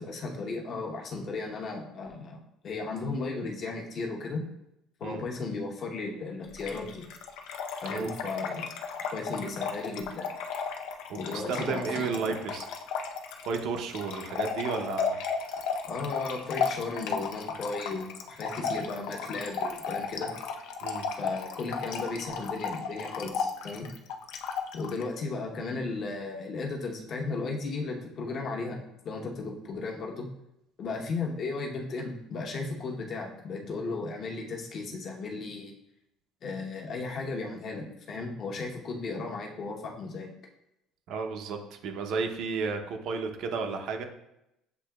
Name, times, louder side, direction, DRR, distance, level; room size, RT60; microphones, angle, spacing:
voice 1, 0.0-4.4 5.0-7.0 7.8-8.7 9.1-10.3 11.1-12.3 15.9-20.3 21.2-23.9 24.7-28.8 29.0-30.3 30.8-35.7 36.4-40.3, left 3 dB, 40° left, 1 dB, 0.9 m, -35 dB
Trickle dribble / Fill (with liquid), 6.6-25.0, left 5 dB, 75° left, 0.5 m, -34 dB
voice 2, 11.3-12.7 13.5-15.2 20.8-21.0 41.1-44.0, right 5 dB, 60° right, 4 dB, 0.7 m, -32 dB
8.0 x 2.8 x 2.3 m, 0.84 s
cardioid pair, 125°, 0 cm